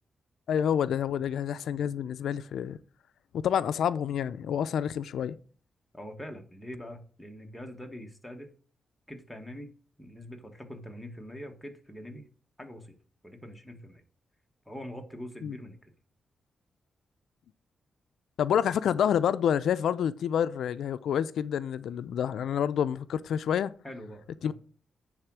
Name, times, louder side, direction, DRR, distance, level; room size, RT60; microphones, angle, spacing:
voice 1, 0.5-2.8 3.3-5.4 15.4-15.6 18.4-23.7 24.4-24.5, left 9 dB, 90° left, 0.4 m, -28 dB
voice 2, 5.9-8.5 9.1-9.7 10.0-12.3 12.6-13.0 13.2-14.0 14.7-15.9 23.8-24.5, equal, 5° left, 1.3 m, -43 dB
10.0 x 3.6 x 6.1 m
wide cardioid pair, 120°, 0 cm